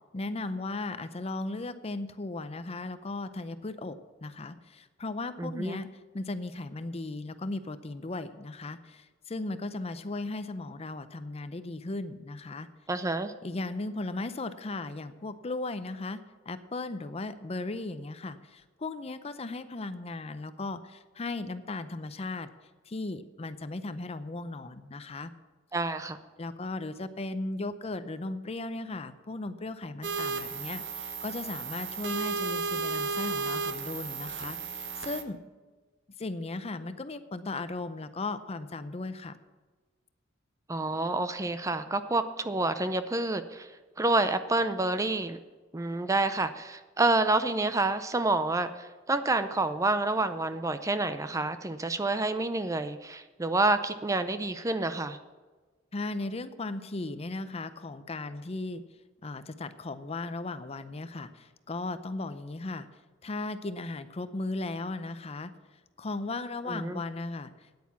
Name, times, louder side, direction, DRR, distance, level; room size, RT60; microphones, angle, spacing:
voice 1, 0.1-12.7 13.4-22.5 22.9-25.3 26.4-35.4 36.2-39.4 55.9-58.8 59.2-62.9 63.2-65.5 66.0-67.8, left 2 dB, 30° left, 12 dB, 0.6 m, -36 dB
voice 2, 5.4-5.8 12.9-13.3 25.7-26.2 40.7-43.7 44.0-45.4 45.7-55.2 66.7-67.0, right 2 dB, 15° right, 11 dB, 0.5 m, -28 dB
sound 1, 30.0-35.2, right 4 dB, 65° right, 1.1 m, -34 dB
9.5 x 9.0 x 7.0 m, 1.3 s
head